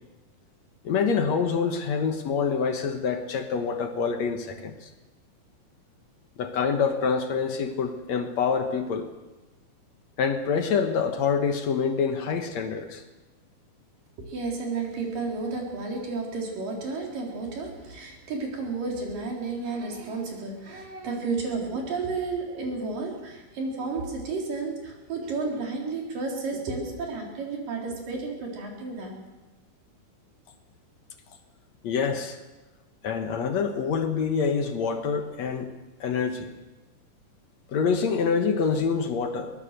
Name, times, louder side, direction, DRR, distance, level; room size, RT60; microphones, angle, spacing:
voice 1, 0.8-4.9 6.4-9.1 10.2-13.0 31.8-32.4 33.0-35.7 36.0-36.5 37.7-39.5, left 6 dB, 65° left, 7 dB, 2.4 m, -26 dB
voice 2, 14.3-29.2, right 3 dB, 90° right, 0 dB, 5.5 m, -32 dB
23.0 x 18.5 x 6.7 m, 1.1 s
omnidirectional pair, 3.8 m